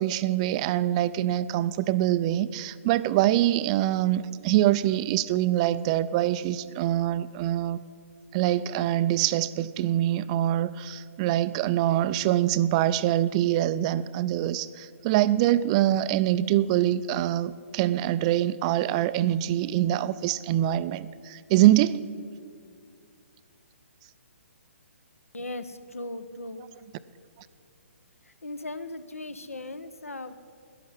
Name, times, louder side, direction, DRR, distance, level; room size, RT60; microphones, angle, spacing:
voice 1, 0.0-7.8 8.3-22.0, right 13 dB, 25° right, 15 dB, 0.4 m, -24 dB
voice 2, 25.3-26.7 28.4-30.3, left 2 dB, 80° left, 12 dB, 1.0 m, -38 dB
11.5 x 11.0 x 8.2 m, 2.2 s
figure-of-eight pair, 130°, 8 cm